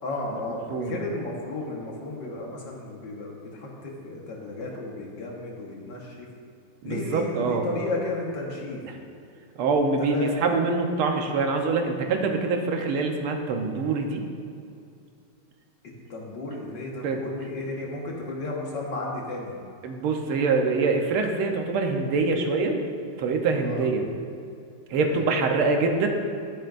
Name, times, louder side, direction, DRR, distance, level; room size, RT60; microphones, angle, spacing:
voice 1, 0.0-6.3 6.8-8.8 10.0-10.4 16.1-19.6 23.6-23.8 25.1-25.2, left 2 dB, 60° left, -2 dB, 2.0 m, -33 dB
voice 2, 6.8-7.7 9.6-14.2 17.0-17.2 19.8-22.8 23.2-24.0 24.9-26.1, right 4 dB, 85° right, 3 dB, 1.8 m, -24 dB
12.0 x 10.5 x 2.5 m, 2.5 s
omnidirectional pair, 2.3 m